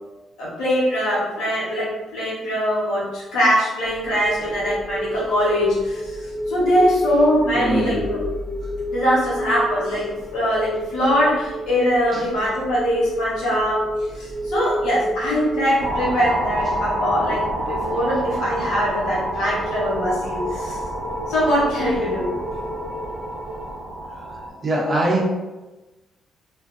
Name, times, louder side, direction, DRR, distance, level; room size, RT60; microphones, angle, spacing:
voice 1, 0.4-8.2 8.9-13.8 14.1-20.8 21.3-22.3, equal, 85° left, -7 dB, 1.1 m, -22 dB
sound 1, 3.8-23.7, equal, 50° left, 0.8 m, -31 dB
voice 2, 7.5-8.1 12.1-12.2 21.8-21.9 24.1-24.2 24.6-25.3, right 1 dB, 30° right, -2 dB, 0.7 m, -22 dB
sound 2, 15.8-24.5, right 1 dB, 85° right, 0.5 m, -28 dB
2.4 x 2.3 x 2.5 m, 1.1 s
cardioid pair, 90°, 0 cm